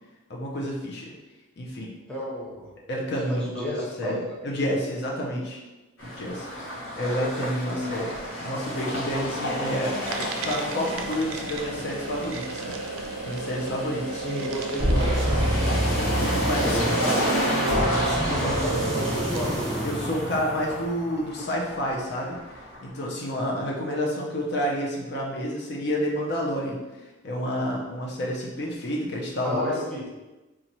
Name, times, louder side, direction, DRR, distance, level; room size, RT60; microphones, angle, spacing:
voice 1, 0.3-1.1 1.6-1.9 2.9-5.6 6.0-8.1 8.4-9.9 10.4-12.8 13.2-14.2 15.9-16.8 19.8-22.4 22.8-29.7, equal, 50° left, -2 dB, 0.6 m, -29 dB
voice 2, 2.1-2.7 3.3-4.4 7.7-7.9 14.1-15.4 16.5-17.8 18.1-19.5 29.4-30.0, equal, 5° left, -6 dB, 0.6 m, -32 dB
sound 1, 6.0-23.0, equal, 85° left, 1.0 m, -32 dB
sound 2, 10.0-19.6, right 4 dB, 75° right, 0.4 m, -34 dB
sound 3, 14.8-21.0, equal, 20° right, 1.0 m, -27 dB
2.9 x 2.4 x 4.0 m, 1.1 s
head